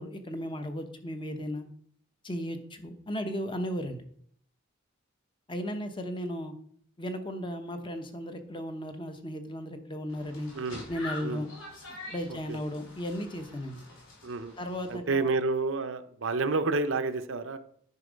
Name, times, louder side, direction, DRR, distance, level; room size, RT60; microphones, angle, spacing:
voice 1, 0.0-1.7 2.2-4.0 5.5-6.5 7.0-10.5 10.9-11.5 11.9-13.8 14.6-15.3, equal, 25° left, 7 dB, 0.9 m, -35 dB
sound 1, 10.1-14.9, left 2 dB, 70° left, 3.5 m, -45 dB
voice 2, 10.5-10.8 11.2-11.4 12.3-12.6 14.2-14.5 14.9-17.6, right 3 dB, 65° right, 10 dB, 0.6 m, -29 dB
9.6 x 5.3 x 5.1 m, 0.63 s
head